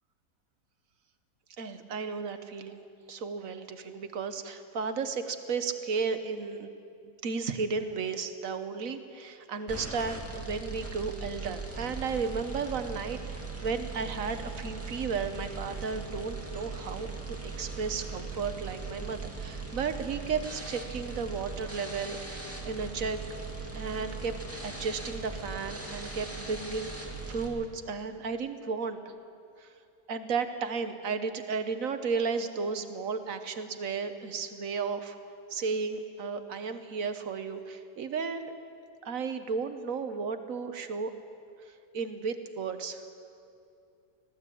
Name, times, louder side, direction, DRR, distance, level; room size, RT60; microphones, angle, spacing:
voice 1, 1.6-6.7 7.0-23.2 23.7-24.3 24.6-29.1 29.6-29.7 30.1-35.2 35.5-38.5 39.0-41.1 41.7-43.0, right 5 dB, 55° right, 9 dB, 1.5 m, -34 dB
sound 1, 9.7-27.5, right 4 dB, 10° right, 2.2 m, -39 dB
19.5 x 15.5 x 8.4 m, 2.5 s
omnidirectional pair, 1.8 m